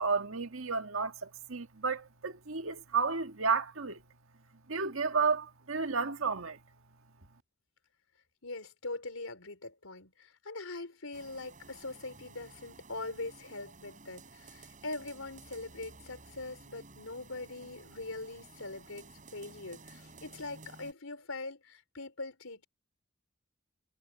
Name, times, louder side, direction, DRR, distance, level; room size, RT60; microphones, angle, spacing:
voice 1, 0.0-4.0 4.7-6.6, right 5 dB, 75° right, 1.7 m, -32 dB
voice 2, 8.4-22.7, left 2 dB, 80° left, 4.0 m, -42 dB
sound 1, 11.1-20.9, right 3 dB, 40° right, 7.5 m, -54 dB
head